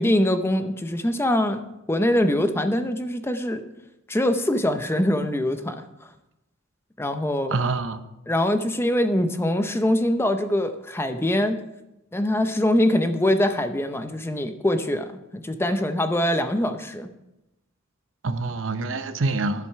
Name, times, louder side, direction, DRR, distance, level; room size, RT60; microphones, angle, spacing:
voice 1, 0.0-1.6 1.9-3.6 4.1-5.8 7.0-7.6 8.3-11.6 12.1-17.1, left 1 dB, 10° left, 8 dB, 0.6 m, -23 dB
voice 2, 7.5-8.0 18.2-19.7, right 3 dB, 75° right, 10 dB, 0.8 m, -26 dB
10.5 x 7.8 x 5.7 m, 0.92 s
head